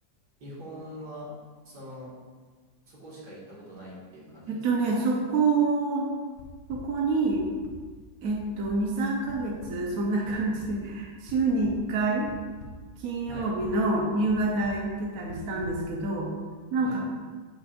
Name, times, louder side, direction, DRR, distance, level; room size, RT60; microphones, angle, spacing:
voice 1, 0.4-1.3 1.7-2.1 2.9-4.7 13.3-13.5 16.8-17.0, equal, 85° right, -7 dB, 2.4 m, -43 dB
voice 2, 4.5-6.1 6.7-7.4 8.2-12.3 13.0-16.3 16.7-17.0, right 3 dB, 65° right, -2 dB, 1.2 m, -27 dB
sound 1, 6.4-6.8 7.3-7.7 8.3-8.4 8.6-8.7 9.3-9.4 9.6-9.7 10.3-10.7 11.3-11.7 12.3-12.8 13.3-13.7 14.3-14.4 14.6-14.8 15.3-15.7, left 3 dB, 55° left, 1.1 m, -45 dB
7.2 x 6.0 x 2.5 m, 1.5 s
omnidirectional pair, 1.7 m